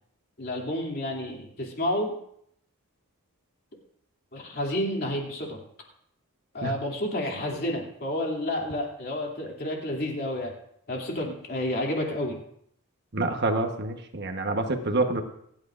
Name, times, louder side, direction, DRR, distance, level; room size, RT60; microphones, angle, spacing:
voice 1, 0.4-2.1 4.3-5.6 6.5-10.5 10.9-12.4, left 1 dB, 45° left, 0 dB, 2.7 m, -30 dB
voice 2, 13.1-15.2, right 2 dB, 50° right, 5 dB, 1.2 m, -27 dB
27.0 x 9.5 x 2.5 m, 0.70 s
head